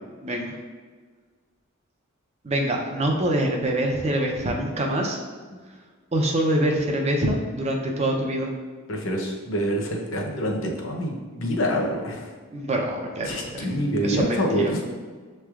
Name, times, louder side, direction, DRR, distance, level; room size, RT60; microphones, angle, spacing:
voice 1, 2.4-5.2 6.1-8.5 12.5-13.6 14.0-14.7, right 1 dB, 30° right, 1 dB, 0.5 m, -25 dB
voice 2, 8.9-12.3 13.2-14.8, equal, 70° left, 1 dB, 0.7 m, -26 dB
6.7 x 3.2 x 2.3 m, 1.5 s
head